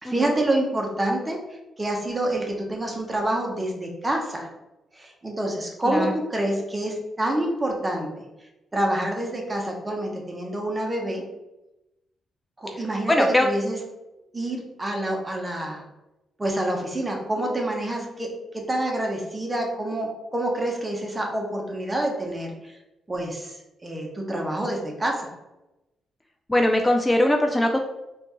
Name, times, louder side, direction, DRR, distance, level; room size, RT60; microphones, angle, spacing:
voice 1, 0.0-1.4 1.8-4.5 4.9-8.3 8.7-11.2 12.6-13.8 14.3-15.8 16.4-22.8 23.1-23.5 23.8-25.3, right 1 dB, 20° right, 1 dB, 0.9 m, -27 dB
voice 2, 13.1-13.5 26.5-27.8, left 1 dB, 10° left, 3 dB, 0.3 m, -21 dB
4.3 x 2.6 x 3.0 m, 0.97 s
cardioid pair, 80°, 0 cm